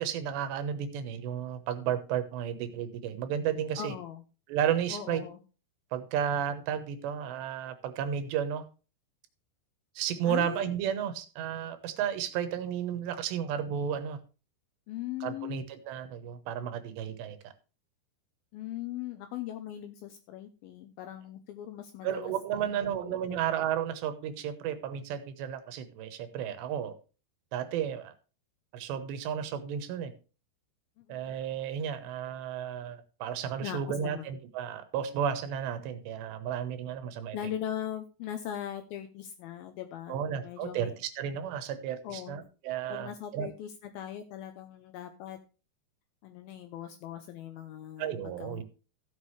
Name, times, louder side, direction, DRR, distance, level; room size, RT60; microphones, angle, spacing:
voice 1, 0.0-3.9 4.5-5.2 5.9-8.6 10.0-14.2 15.2-17.4 22.0-27.0 27.5-28.1 28.7-30.1 31.1-37.4 40.1-43.5 48.0-48.6, right 9 dB, 85° right, 10 dB, 3.2 m, -33 dB
voice 2, 3.8-4.2 4.9-5.4 10.2-10.7 14.9-15.6 18.5-23.4 31.0-31.4 33.6-34.3 37.2-40.9 42.0-42.5 42.9-45.4 46.2-48.6, left 11 dB, 75° left, 8 dB, 2.3 m, -40 dB
15.0 x 7.3 x 3.2 m, 0.34 s
omnidirectional pair, 4.9 m